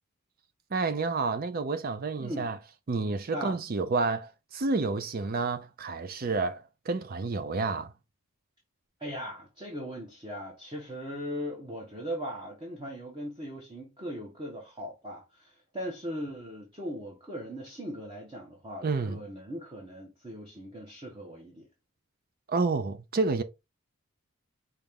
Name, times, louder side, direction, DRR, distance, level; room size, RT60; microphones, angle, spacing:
voice 1, 0.7-2.6 2.9-7.9 18.8-19.2 22.5-23.4, right 3 dB, 40° right, 0.5 m, -29 dB
voice 2, 2.2-2.5 3.3-3.6 9.0-21.7, equal, 20° right, 1.0 m, -39 dB
5.1 x 2.9 x 3.5 m
head